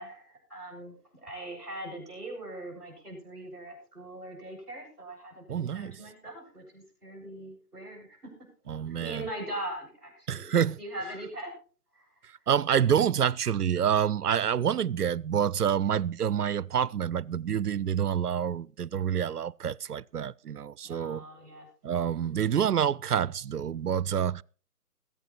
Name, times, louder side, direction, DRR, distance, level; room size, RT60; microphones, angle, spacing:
voice 1, 0.0-8.2 8.9-11.5 11.9-12.0 20.8-21.7, right 1 dB, ahead, 7.3 m, -41 dB
voice 2, 5.5-6.0 8.7-9.2 10.3-10.8 12.5-21.2 21.8-24.4, right 8 dB, 70° right, 0.6 m, -27 dB
21.5 x 8.5 x 4.3 m
figure-of-eight pair, 165°, 47 cm